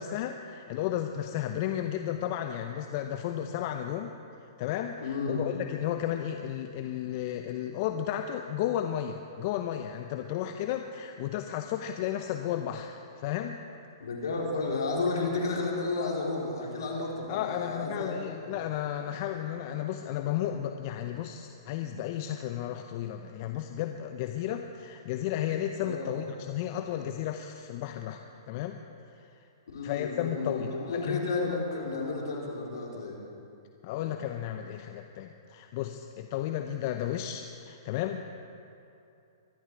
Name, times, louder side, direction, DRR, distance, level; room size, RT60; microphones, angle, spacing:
voice 1, 0.0-4.1 4.6-13.6 17.3-28.2 28.5-28.8 29.1-29.3 29.8-31.3 33.8-38.2, left 11 dB, 45° left, 6 dB, 0.7 m, -33 dB
voice 2, 5.0-5.4 14.0-18.2 18.5-18.6 25.8-26.1 29.7-33.2, left 3 dB, 75° left, -2 dB, 4.0 m, -32 dB
24.0 x 11.5 x 4.7 m, 2.7 s
hypercardioid pair, 125°, 2 cm